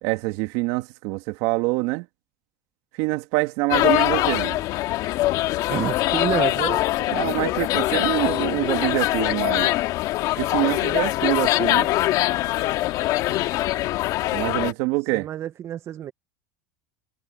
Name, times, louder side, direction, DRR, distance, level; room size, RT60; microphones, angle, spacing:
voice 1, 0.0-2.1 3.0-4.6 7.1-9.7 10.4-11.9 14.3-15.3, right 23 dB, 65° right, 2.2 m, -25 dB
sound 1, 3.7-14.7, left 16 dB, 55° left, 1.7 m, -23 dB
voice 2, 5.7-6.8 15.1-16.1, right 10 dB, 35° right, 0.7 m, -28 dB
supercardioid pair, 125°, 8 cm